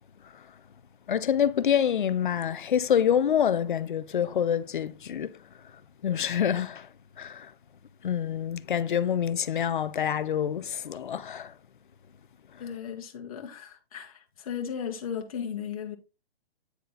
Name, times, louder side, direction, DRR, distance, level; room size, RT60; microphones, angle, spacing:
voice 1, 1.1-5.4 6.0-6.9 7.2-7.5 8.0-11.5 12.5-12.6, left 9 dB, 55° left, 0.7 m, -27 dB
voice 2, 12.6-16.0, left 8 dB, 35° left, 1.7 m, -36 dB
9.6 x 4.0 x 4.1 m
hypercardioid pair, 165°, 31 cm